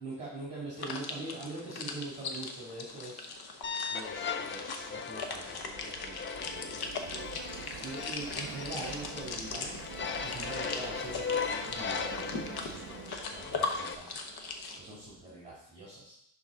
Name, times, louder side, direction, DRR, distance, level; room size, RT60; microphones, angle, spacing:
voice 1, 0.0-3.4 3.9-9.7 10.2-14.3 14.8-16.1, right 2 dB, 15° right, -6 dB, 2.2 m, -43 dB
sound 1, 0.8-14.8, left 4 dB, 60° left, 1.0 m, -40 dB
sound 2, 3.6-13.9, left 5 dB, 30° left, 0.5 m, -38 dB
Subway metro underground, 3.9-15.2, right 10 dB, 60° right, 0.5 m, -49 dB
11.0 x 4.1 x 3.6 m, 0.75 s
cardioid pair, 120°, 43 cm